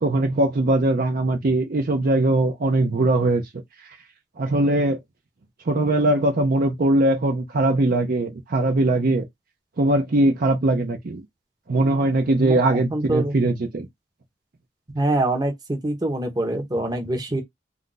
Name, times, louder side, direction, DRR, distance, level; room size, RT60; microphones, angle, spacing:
voice 1, 0.0-3.4 4.4-5.0 5.7-9.3 9.8-11.2 11.7-13.9, right 2 dB, 50° right, 0.5 m, -21 dB
voice 2, 12.4-13.3 14.9-17.4, right 1 dB, 20° right, 0.8 m, -25 dB
2.4 x 2.3 x 3.8 m
head